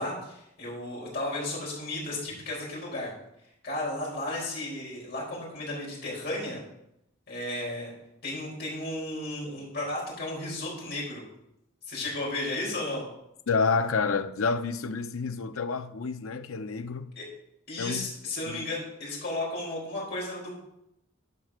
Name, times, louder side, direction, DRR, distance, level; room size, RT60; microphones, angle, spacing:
voice 1, 0.0-3.1 3.6-6.6 7.3-7.9 8.2-11.2 11.8-13.0 17.1-17.3 17.7-20.6, left 2 dB, 50° left, 5.0 m, -34 dB
voice 2, 13.5-17.1 17.8-18.0 18.4-18.7, left 4 dB, 75° left, 0.7 m, -29 dB
11.0 x 5.8 x 6.4 m
head